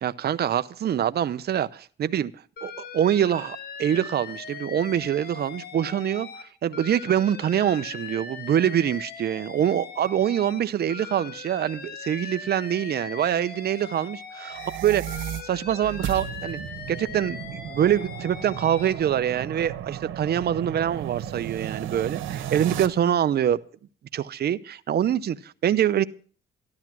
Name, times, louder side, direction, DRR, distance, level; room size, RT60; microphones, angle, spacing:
voice 1, 0.0-2.3 2.6-6.3 6.6-14.5 14.8-15.0 15.4-16.6 16.9-23.6 24.1-26.0, right 10 dB, 55° right, 13 dB, 0.7 m, -25 dB
Alarm, 2.6-6.4 6.7-10.6 10.9-14.8 15.1-18.9, left 5 dB, 50° left, 1.9 m, -40 dB
sound 1, 14.4-22.9, right 10 dB, 85° right, 1.6 m, -35 dB
13.5 x 11.5 x 6.1 m, 0.43 s
cardioid pair, 90°, 20 cm